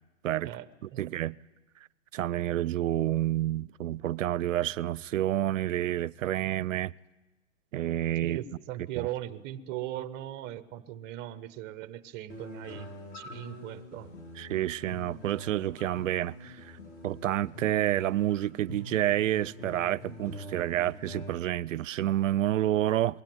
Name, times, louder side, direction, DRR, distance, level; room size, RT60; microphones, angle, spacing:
voice 1, 0.4-1.3 8.2-14.1, right 13 dB, 25° right, 1.0 m, -39 dB
voice 2, 1.0-1.4 2.1-6.9 7.7-8.4 8.9-9.1 14.4-16.6 17.0-23.2, right 13 dB, 80° right, 0.6 m, -29 dB
sound 1, 12.3-21.3, left 1 dB, 20° left, 8.0 m, -45 dB
21.5 x 17.0 x 9.3 m
hypercardioid pair, 135°, 38 cm